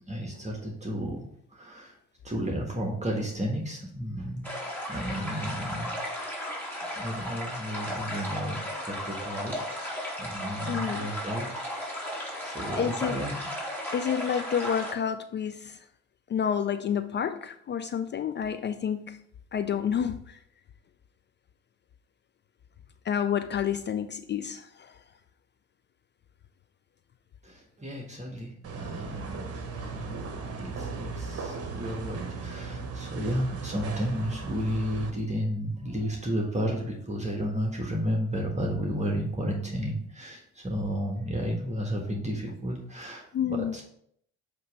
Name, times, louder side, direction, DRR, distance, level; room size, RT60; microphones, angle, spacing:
voice 1, 0.1-1.3 1.5-2.0 2.2-4.5 4.9-5.9 6.9-8.6 8.9-11.9 12.4-13.5 27.4-29.6 29.9-30.2 30.6-43.8, equal, 20° right, 0 dB, 1.6 m, -32 dB
sound 1, 4.4-14.9, equal, 5° left, 3.0 m, -35 dB
voice 2, 10.7-11.1 12.7-13.2 13.9-15.8 16.3-19.2 19.5-20.4 23.1-25.0 43.3-43.7, left 8 dB, 30° left, 10 dB, 0.4 m, -29 dB
sound 2, 28.6-35.1, right 4 dB, 40° right, 1.2 m, -37 dB
7.8 x 3.1 x 4.8 m, 0.68 s
hypercardioid pair, 55°, 35 cm